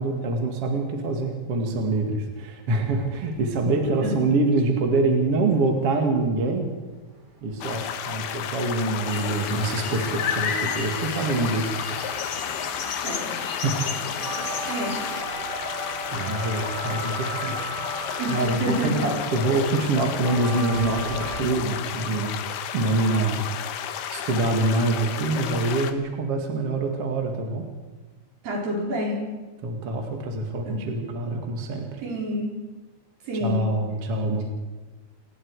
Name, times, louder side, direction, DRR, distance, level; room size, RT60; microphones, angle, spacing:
voice 1, 0.0-6.7 7.4-11.7 13.6-13.8 16.1-17.5 18.3-22.4 22.7-23.8 24.1-27.6 29.6-32.0 33.4-34.4, right 2 dB, 45° right, 2 dB, 2.6 m, -25 dB
sound 1, 3.0-3.9 6.9-7.0 7.2-21.4, right 2 dB, 25° right, 3.3 m, -38 dB
sound 2, 7.6-25.9, left 9 dB, 80° left, 3.2 m, -33 dB
sound 3, 9.0-15.2, left 6 dB, 45° left, 2.1 m, -32 dB
voice 2, 13.0-13.4 14.7-15.0 18.2-19.0 28.4-29.2 30.7-30.8 32.0-32.5 33.3-33.7, equal, 60° right, -2 dB, 6.3 m, -28 dB
28.5 x 20.0 x 4.9 m, 1.2 s
omnidirectional pair, 4.5 m